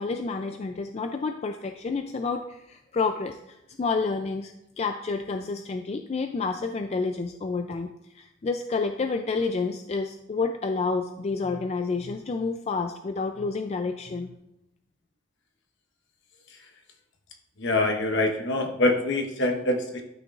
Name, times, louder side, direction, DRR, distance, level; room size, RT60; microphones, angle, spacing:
voice 1, 0.0-3.4 3.8-14.3, left 4 dB, 30° left, 6 dB, 0.3 m, -29 dB
voice 2, 17.6-20.0, left 2 dB, 60° left, 3 dB, 1.1 m, -25 dB
12.0 x 6.2 x 2.4 m, 0.85 s
head